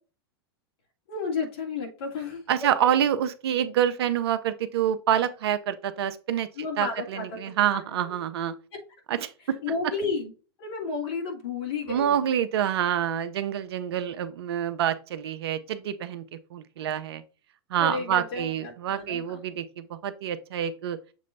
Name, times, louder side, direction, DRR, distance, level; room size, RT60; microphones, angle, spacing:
voice 1, 1.1-2.9 6.6-7.3 7.7-8.1 9.6-10.3 10.6-12.2 17.8-19.4, left 4 dB, 70° left, 2.6 m, -32 dB
voice 2, 2.5-6.5 6.8-8.5 9.1-9.9 11.9-16.2 16.5-17.2 17.7-21.0, right 10 dB, 75° right, 0.8 m, -27 dB
7.3 x 3.1 x 4.1 m
hypercardioid pair, 110°, 13 cm